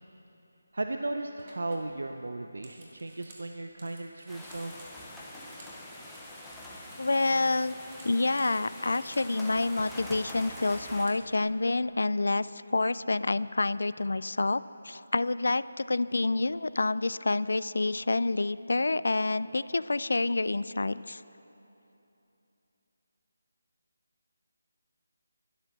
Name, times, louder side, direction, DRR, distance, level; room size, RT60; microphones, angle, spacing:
voice 1, 0.7-4.8, right 2 dB, 80° right, 6 dB, 0.6 m, -36 dB
sound 1, 0.8-1.0 1.4-5.8 6.1-9.3 9.6-11.5, right 2 dB, 30° right, 1.8 m, -55 dB
sound 2, 4.3-11.1, left 1 dB, 5° left, 0.8 m, -44 dB
voice 2, 7.0-7.7 8.0-21.2, left 2 dB, 75° left, 17 dB, 0.3 m, -28 dB
12.0 x 10.5 x 6.1 m, 3.0 s
figure-of-eight pair, 170°, 0 cm